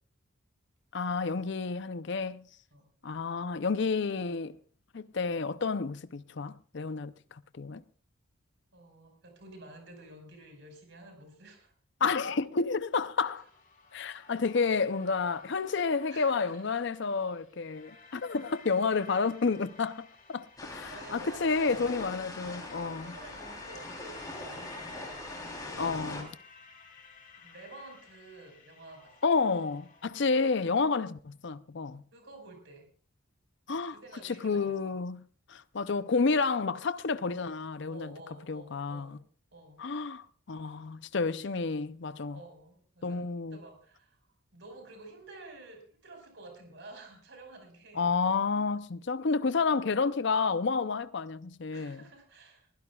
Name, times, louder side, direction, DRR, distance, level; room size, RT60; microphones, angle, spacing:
voice 1, 0.9-2.4 3.0-4.5 4.9-7.1 7.5-7.8 12.0-13.4 13.9-20.4 20.7-23.1 25.8-26.3 29.2-32.0 33.7-34.0 34.2-35.2 35.5-38.1 38.5-39.2 39.8-42.4 43.0-43.6 48.0-52.0, left 4 dB, 55° left, 0.6 m, -30 dB
voice 2, 8.7-11.7 13.2-13.5 16.1-16.6 20.9-22.6 23.0-26.0 27.4-29.3 32.1-32.9 33.9-34.8 37.9-39.2 39.5-39.8 42.3-44.3 44.5-48.1 51.7-52.7, right 2 dB, 55° right, 5.1 m, -51 dB
sound 1, 13.2-30.6, left 4 dB, 40° left, 2.7 m, -54 dB
sound 2, 20.6-26.2, left 2 dB, 15° left, 3.4 m, -42 dB
23.0 x 16.0 x 2.3 m
head